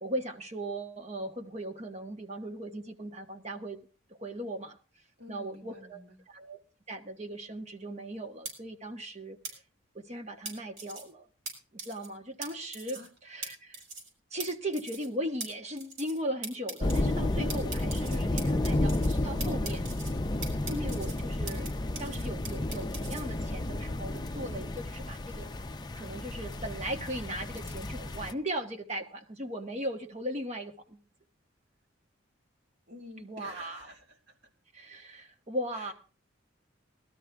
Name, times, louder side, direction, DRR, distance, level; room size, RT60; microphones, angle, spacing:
voice 1, 0.0-3.8 4.1-4.8 5.3-6.0 6.3-6.6 6.9-9.6 9.9-11.3 11.7-13.8 14.3-19.8 20.6-21.7 22.0-25.5 25.9-31.0 33.2-33.9 34.7-35.9, right 1 dB, 35° right, 5 dB, 1.4 m, -38 dB
voice 2, 5.2-6.2 12.9-13.1 19.3-19.8 32.9-34.4 35.7-35.9, left 1 dB, 55° right, -1 dB, 3.5 m, -49 dB
sound 1, 8.5-8.6 9.4-9.5 10.5-11.0 11.5-11.6 11.8-12.1 12.4-12.5 12.7-13.1 13.4-13.5 13.7-14.1 14.4-14.5 14.7-15.1 15.4-15.5 15.8-16.2 16.4-17.0 17.5-19.2 19.4-20.1 20.4-21.7 22.0-23.2, right 3 dB, 85° right, 5.3 m, -40 dB
sound 2, 16.8-28.3, left 1 dB, 20° left, 0.5 m, -32 dB
19.0 x 12.5 x 3.5 m, 0.37 s
head